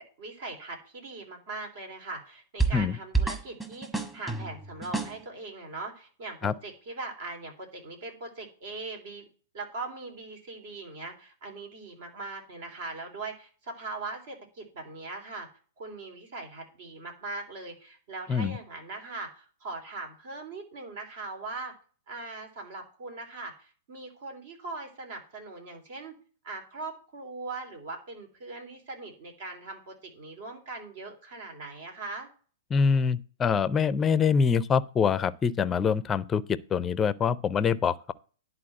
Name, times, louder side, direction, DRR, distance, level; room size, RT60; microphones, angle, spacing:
voice 1, 0.2-9.2 9.5-15.5 15.8-21.7 22.1-26.2 26.4-32.3, right 3 dB, 60° right, 3.5 m, -40 dB
sound 1, 2.6-2.9 3.1-5.2, right 4 dB, 10° right, 1.5 m, -29 dB
voice 2, 32.7-38.1, left 6 dB, 20° left, 0.5 m, -25 dB
11.0 x 4.1 x 7.7 m
hypercardioid pair, 110°, 0 cm